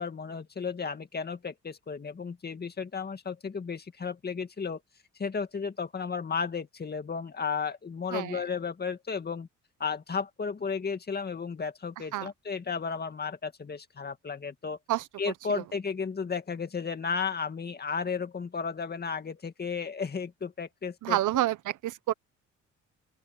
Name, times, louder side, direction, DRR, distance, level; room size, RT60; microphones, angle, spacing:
voice 1, 0.0-4.8 5.2-9.5 9.8-14.8 15.2-21.2, left 5 dB, 30° left, 2.2 m, -34 dB
voice 2, 8.1-8.4 12.1-12.3 14.9-15.0 15.5-15.6 21.0-22.1, right 14 dB, 80° right, 1.1 m, -28 dB
open air
cardioid pair, 90°, 30 cm